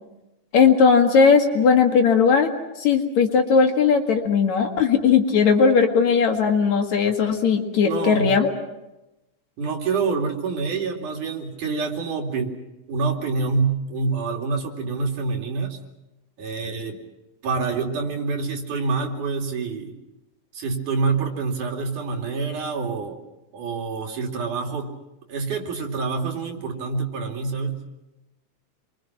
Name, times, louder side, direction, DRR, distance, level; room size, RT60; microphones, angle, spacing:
voice 1, 0.5-2.5 2.8-8.5, left 5 dB, 65° left, 4 dB, 3.3 m, -18 dB
voice 2, 7.8-8.4 9.6-12.6 12.9-15.8 16.4-17.0 17.4-20.0 20.5-23.2 23.5-25.0 25.3-27.8, right 4 dB, 85° right, 2 dB, 4.1 m, -26 dB
28.5 x 23.5 x 6.0 m, 0.98 s
omnidirectional pair, 3.5 m